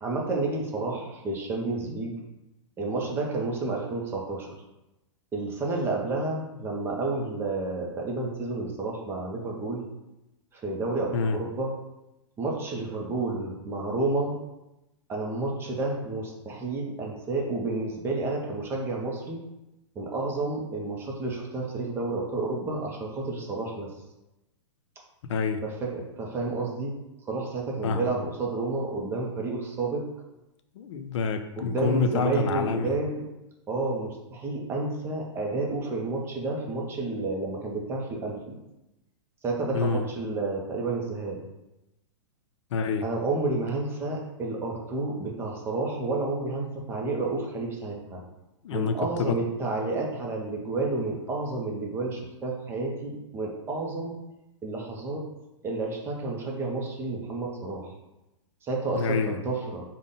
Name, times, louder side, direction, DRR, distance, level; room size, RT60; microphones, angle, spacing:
voice 1, 0.0-2.2 2.8-4.5 5.3-9.8 10.5-11.7 12.4-14.4 15.1-19.4 20.0-23.9 25.6-26.9 27.2-30.0 31.6-33.2 33.7-38.6 39.4-41.4 43.0-48.2 48.7-54.2 54.6-55.2 55.6-57.9 58.6-59.8, right 3 dB, 15° right, -1 dB, 0.5 m, -30 dB
voice 2, 25.2-25.6 27.8-28.1 30.8-32.9 39.7-40.1 42.7-43.0 48.6-49.4 59.0-59.4, left 5 dB, 70° left, 8 dB, 0.4 m, -27 dB
3.7 x 2.1 x 3.7 m, 0.94 s
hypercardioid pair, 145°, 16 cm